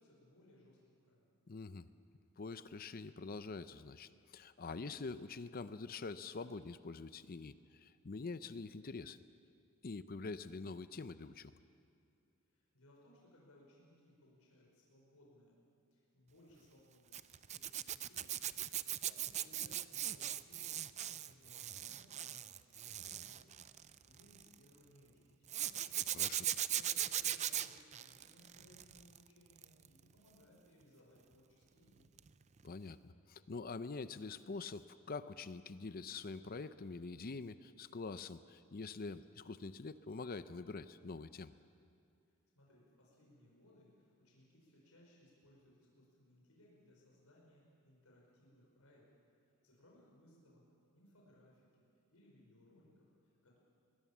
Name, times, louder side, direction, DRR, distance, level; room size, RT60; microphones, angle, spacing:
voice 1, 0.0-1.4 12.5-15.6 15.9-26.0 26.4-32.2 42.3-49.1 49.4-50.6 50.9-53.6, left 1 dB, 80° left, -3 dB, 5.3 m, -65 dB
voice 2, 1.5-1.9 2.4-9.2 9.8-11.5 26.1-26.5 32.6-41.5, left 4 dB, 40° left, 13 dB, 0.6 m, -45 dB
Zipper (clothing), 17.1-24.5 25.5-29.2 29.5-29.9 32.2-32.3 32.6-32.7, right 11 dB, 30° right, 0.5 m, -39 dB
23.0 x 20.0 x 7.3 m, 2.6 s
head